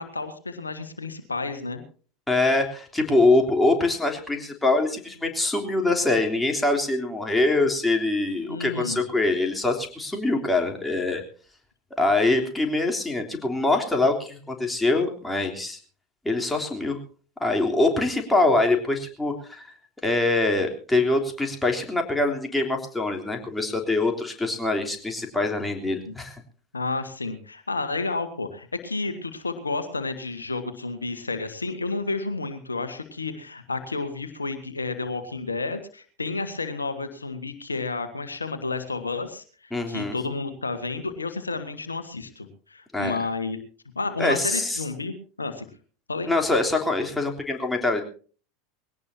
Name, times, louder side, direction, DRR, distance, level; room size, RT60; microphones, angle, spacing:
voice 1, 0.0-1.8 8.5-9.0 26.0-26.1 26.7-43.6 43.9-45.6 46.1-46.3, left 3 dB, 90° left, 9 dB, 1.6 m, -31 dB
voice 2, 2.3-11.2 12.0-15.8 16.2-17.0 17.4-19.7 20.0-26.4 39.7-40.1 42.9-43.2 44.2-44.8 46.3-48.0, left 2 dB, 10° left, 2 dB, 3.4 m, -24 dB
21.0 x 17.5 x 2.8 m, 0.39 s
figure-of-eight pair, 80°, 0 cm